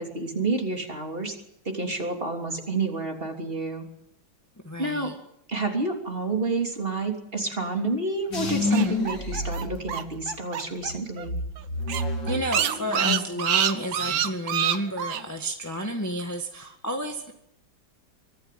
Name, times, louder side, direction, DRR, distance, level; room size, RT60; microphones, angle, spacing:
voice 1, 0.0-1.4 1.6-3.8 4.8-5.1 5.5-11.4, right 3 dB, 30° right, 3 dB, 3.4 m, -29 dB
voice 2, 4.6-5.1 8.7-9.0 12.2-17.3, equal, 10° left, 3 dB, 1.6 m, -31 dB
sound 1, 8.3-10.4 10.8-13.4 13.7-14.3, left 2 dB, 70° left, 3.2 m, -30 dB
sound 2, 8.4-10.9 11.2-11.3 11.6-11.7 11.9-15.2, right 9 dB, 80° right, 1.8 m, -26 dB
24.0 x 14.0 x 9.4 m, 0.79 s
omnidirectional pair, 2.1 m